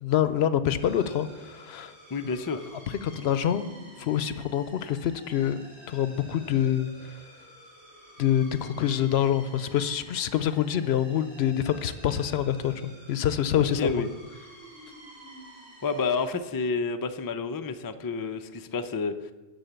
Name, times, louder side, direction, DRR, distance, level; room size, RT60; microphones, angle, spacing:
voice 1, 0.0-1.9 3.1-3.7 4.0-7.2 8.2-13.9, left 10 dB, 75° left, 13 dB, 0.8 m, -26 dB
sound 1, 0.8-16.3, right 1 dB, 55° right, 4.4 m, -50 dB
voice 2, 2.1-2.7 13.6-14.1 15.8-19.3, left 4 dB, 35° left, 9 dB, 0.3 m, -29 dB
11.5 x 4.2 x 8.0 m, 1.2 s
omnidirectional pair, 1.1 m